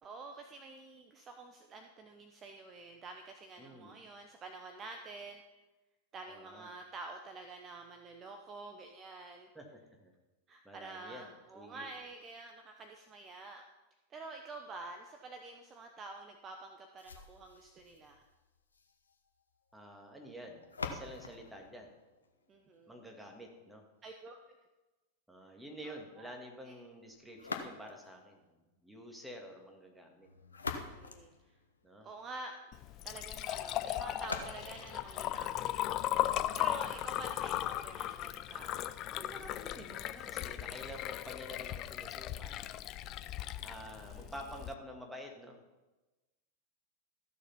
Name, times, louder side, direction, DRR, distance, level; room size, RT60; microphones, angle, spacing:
voice 1, 0.0-5.4 6.1-9.5 10.5-13.6 14.1-18.2 22.5-23.0 24.0-24.4 25.8-26.3 26.6-26.7 30.9-31.6 32.0-32.6 33.0-35.7 36.5-39.0 44.0-44.3, right 3 dB, 25° right, 5 dB, 0.9 m, -48 dB
voice 2, 3.6-4.0 6.3-6.7 9.5-10.1 10.6-11.9 19.7-21.9 22.9-23.8 25.3-30.3 31.8-32.1 36.4-36.8 39.1-42.7 43.6-45.6, equal, 5° right, 2 dB, 2.1 m, -49 dB
sound 1, 17.0-23.0 27.3-28.2 30.2-32.2 34.2-36.2, left 4 dB, 75° left, 1.0 m, -46 dB
Liquid, 32.7-44.7, left 13 dB, 35° left, 0.5 m, -37 dB
14.0 x 6.7 x 5.6 m, 1.1 s
figure-of-eight pair, 90°, 0 cm